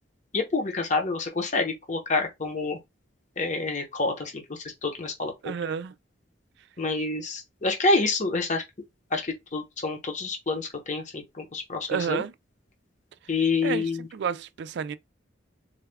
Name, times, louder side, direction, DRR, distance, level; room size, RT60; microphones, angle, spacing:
voice 1, 0.3-2.8 3.4-5.3 6.8-8.6 9.1-12.2 13.3-14.1, left 3 dB, 40° left, 0.8 m, -28 dB
voice 2, 5.4-5.9 11.9-12.3 13.2-13.3 13.6-15.0, right 7 dB, 60° right, 0.3 m, -30 dB
4.0 x 2.3 x 3.3 m
head